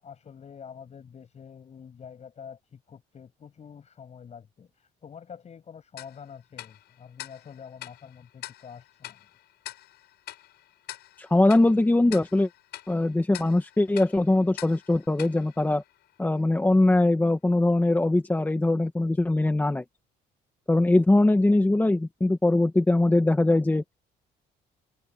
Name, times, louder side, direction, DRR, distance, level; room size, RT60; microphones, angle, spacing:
voice 1, 0.0-9.3, left 7 dB, 40° left, 7.8 m, -46 dB
Tick-tock, 6.0-16.4, left 15 dB, 80° left, 7.7 m, -46 dB
voice 2, 11.2-12.5 12.9-15.8 16.2-19.8 20.7-23.8, left 2 dB, 10° left, 1.4 m, -22 dB
cardioid pair, 110°, 17 cm